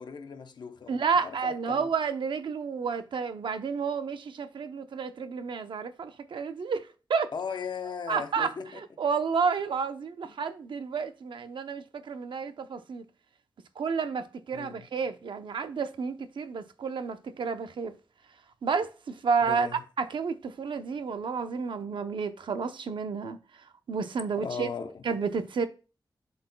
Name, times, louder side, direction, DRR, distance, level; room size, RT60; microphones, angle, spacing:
voice 1, 0.0-1.9 7.3-8.8 10.2-10.3 14.5-14.9 19.4-19.8 24.4-25.1, left 6 dB, 65° left, 0.8 m, -38 dB
voice 2, 0.9-7.3 8.1-13.0 13.8-18.0 18.6-19.7 20.0-23.4 23.9-24.7 25.0-25.7, right 5 dB, 85° right, 0.7 m, -31 dB
11.5 x 4.3 x 2.2 m
wide cardioid pair, 165°, 8 cm